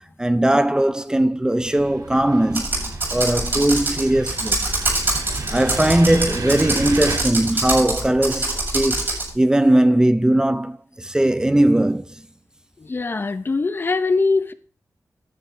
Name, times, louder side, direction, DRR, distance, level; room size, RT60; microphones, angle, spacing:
voice 1, 0.2-2.7 3.1-4.6 5.5-12.0, right 1 dB, 10° right, 0.5 m, -19 dB
sound 1, 1.6-7.2, right 4 dB, 90° right, 2.3 m, -33 dB
Computer keyboard, 2.5-9.3, right 2 dB, 40° right, 7.5 m, -24 dB
voice 2, 12.8-14.5, left 3 dB, 40° left, 0.8 m, -22 dB
13.5 x 11.0 x 3.4 m
wide cardioid pair, 120°, 6 cm